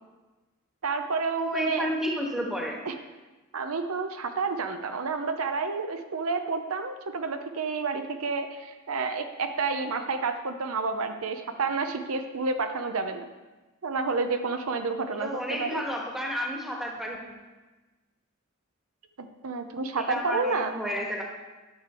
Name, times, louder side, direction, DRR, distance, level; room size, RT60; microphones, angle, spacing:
voice 1, 0.8-1.9 2.9-3.0 3.5-13.3 13.8-15.8 19.2-20.7, right 4 dB, 90° right, 7 dB, 0.7 m, -30 dB
voice 2, 1.4-2.8 15.1-17.4 20.0-21.2, equal, ahead, -1 dB, 1.4 m, -31 dB
10.5 x 6.9 x 4.4 m, 1.2 s
head